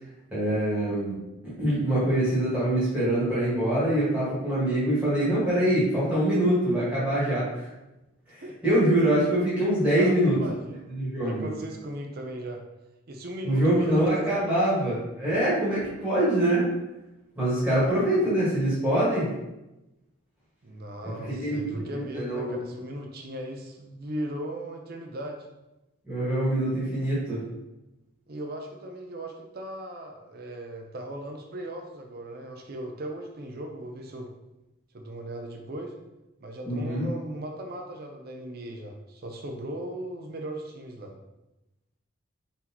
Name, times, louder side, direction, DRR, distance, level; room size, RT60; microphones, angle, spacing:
voice 1, 0.3-1.2 1.4-7.7 8.3-10.4 10.9-11.5 13.4-16.6 17.4-19.3 21.3-22.6 26.1-27.4 36.6-37.1, right 1 dB, 5° right, -10 dB, 1.5 m, -24 dB
voice 2, 10.0-10.9 11.2-12.6 13.1-14.9 17.7-18.1 20.6-25.5 28.3-34.3 34.9-35.9 36.4-41.1, right 1 dB, 45° right, 2 dB, 0.5 m, -38 dB
4.5 x 4.0 x 2.9 m, 0.96 s
head